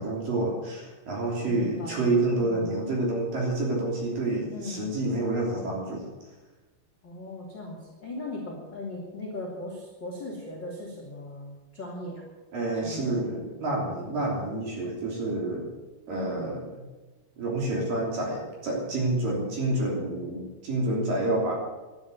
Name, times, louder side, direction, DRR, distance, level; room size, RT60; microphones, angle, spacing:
voice 1, 0.0-6.1 12.5-15.7 16.1-16.6 17.4-21.5, right 2 dB, 45° right, -2 dB, 4.4 m, -28 dB
voice 2, 1.4-2.1 2.3-2.7 4.5-4.9 7.0-12.2 12.8-13.3 16.1-16.5, left 2 dB, 35° left, -2 dB, 2.1 m, -38 dB
12.0 x 10.5 x 9.4 m, 1.2 s
omnidirectional pair, 6.0 m